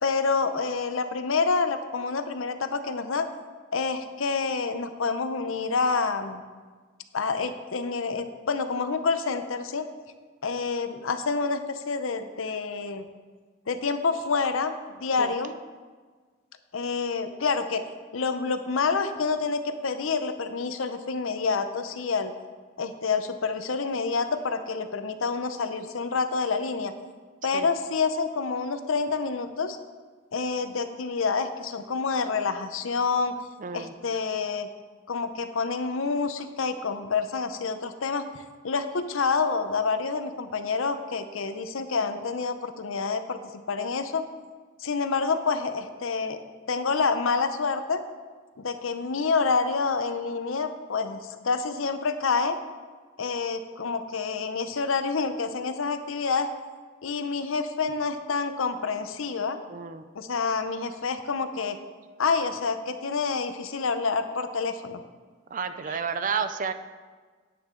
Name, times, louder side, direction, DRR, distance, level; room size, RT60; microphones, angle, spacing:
voice 1, 0.0-3.3 3.7-6.4 7.1-9.9 10.4-13.0 13.7-15.5 16.7-17.8 18.1-22.3 22.8-26.9 27.4-29.8 30.3-33.4 33.7-34.7 35.1-38.2 38.6-43.4 43.7-44.3 44.8-46.4 46.7-48.0 48.6-52.6 53.2-56.5 57.0-59.6 60.1-61.8 62.2-65.0, left 4 dB, 80° left, 9 dB, 0.7 m, -28 dB
voice 2, 33.6-33.9 59.7-60.1 65.5-66.7, right 6 dB, 40° right, 10 dB, 0.5 m, -31 dB
9.6 x 9.4 x 3.8 m, 1.5 s
head